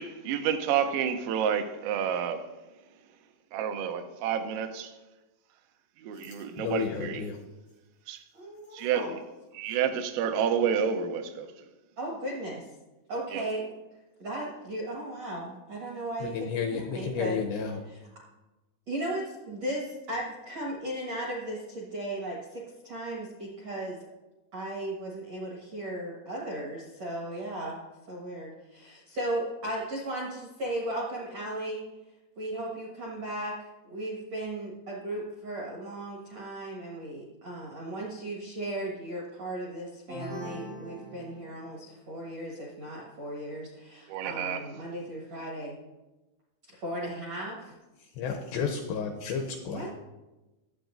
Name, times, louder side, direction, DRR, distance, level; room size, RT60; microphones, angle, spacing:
voice 1, 0.0-2.5 3.5-4.9 6.0-7.2 8.1-8.2 8.7-9.2 9.5-11.5 13.3-13.4 44.1-44.7, right 8 dB, 90° right, 3.5 m, -29 dB
voice 2, 6.2-7.4 16.2-17.8 48.2-49.9, left 6 dB, 85° left, 2.5 m, -32 dB
voice 3, 8.3-9.1 12.0-12.6 13.1-13.6 14.2-17.4 17.9-18.0 18.9-24.0 24.5-27.8 28.1-31.8 32.4-33.6 33.8-45.7 46.7-47.7 49.7-49.9, right 1 dB, 70° right, 1.5 m, -36 dB
sound 1, 40.1-41.9, right 1 dB, 55° right, 0.9 m, -41 dB
21.0 x 8.0 x 2.6 m
omnidirectional pair, 5.7 m